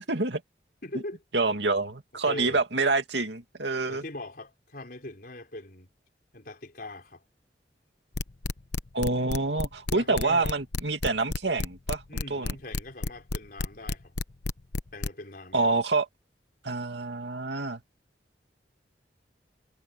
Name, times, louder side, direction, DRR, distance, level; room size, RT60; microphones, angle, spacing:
voice 1, 0.1-0.4 1.3-4.0 8.9-12.5 15.5-16.1 16.6-17.8, right 3 dB, 80° right, 2.5 m, -27 dB
voice 2, 0.8-1.2 2.3-2.6 3.9-5.9 6.3-7.2 9.9-10.5 12.1-14.1 14.9-15.6, left 1 dB, 55° left, 4.6 m, -41 dB
sound 1, 8.1-15.1, left 3 dB, 70° left, 1.0 m, -30 dB
head